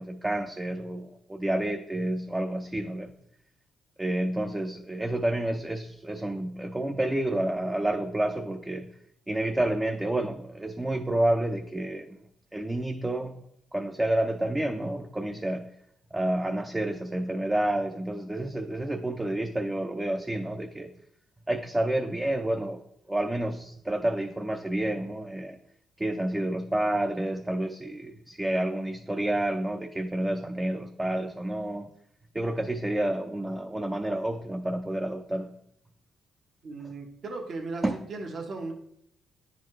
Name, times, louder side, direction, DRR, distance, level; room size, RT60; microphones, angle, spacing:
voice 1, 0.0-3.1 4.0-8.9 9.3-12.2 12.5-13.4 13.7-15.7 16.1-20.9 21.5-22.8 23.1-25.6 26.0-31.9 32.3-35.5 37.8-38.0, right 1 dB, 15° right, 4 dB, 0.5 m, -29 dB
voice 2, 36.6-37.8 38.1-38.7, right 3 dB, 55° right, 2 dB, 1.0 m, -36 dB
9.7 x 4.2 x 3.2 m, 0.73 s
cardioid pair, 90°, 0 cm